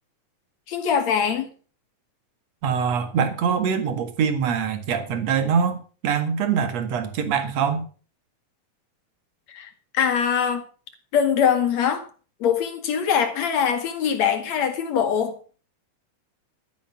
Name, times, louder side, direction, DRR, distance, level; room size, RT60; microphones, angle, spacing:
voice 1, 0.7-1.5 9.5-10.7 11.1-12.1 12.4-15.4, left 7 dB, 65° left, 3.2 m, -23 dB
voice 2, 2.6-7.9, right 6 dB, 60° right, 3.0 m, -24 dB
13.5 x 9.3 x 6.0 m
omnidirectional pair, 3.4 m